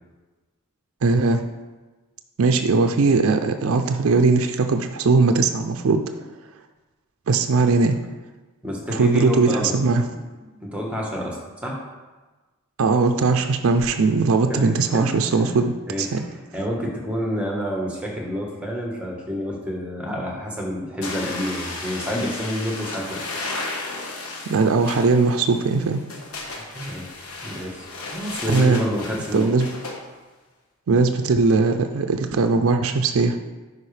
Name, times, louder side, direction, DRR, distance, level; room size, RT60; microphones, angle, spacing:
voice 1, 1.0-1.4 2.4-6.0 7.3-8.0 8.9-10.1 12.8-16.2 24.5-26.0 28.5-28.8 29.3-29.7 30.9-33.4, right 4 dB, 70° right, 6 dB, 0.4 m, -19 dB
voice 2, 8.6-9.7 10.4-11.8 14.5-15.1 15.9-16.1 16.5-23.2 26.7-27.1 27.4-29.5, equal, 5° right, -1 dB, 1.2 m, -28 dB
sound 1, 21.0-30.0, left 2 dB, 90° left, 1.3 m, -34 dB
10.0 x 4.7 x 3.3 m, 1.2 s
head